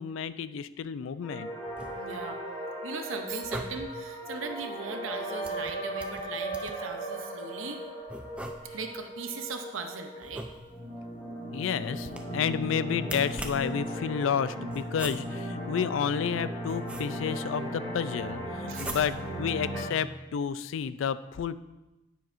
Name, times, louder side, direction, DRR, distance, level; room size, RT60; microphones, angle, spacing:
voice 1, 0.0-1.5 11.5-21.6, left 7 dB, 75° left, 15 dB, 0.3 m, -31 dB
sound 1, 1.2-19.8, right 1 dB, 15° left, 3.4 m, -37 dB
sound 2, 1.6-2.3 3.3-4.1 5.4-6.9 8.1-9.0 10.2-11.0 12.0-12.5 13.0-13.8 14.7-15.5 16.3-17.4 18.7-19.4, right 1 dB, 5° right, 0.4 m, -42 dB
voice 2, 2.0-2.4 2.8-7.8 8.7-10.5 18.7-19.1, right 5 dB, 80° right, 5 dB, 0.7 m, -39 dB
9.7 x 9.3 x 2.5 m, 1.0 s
head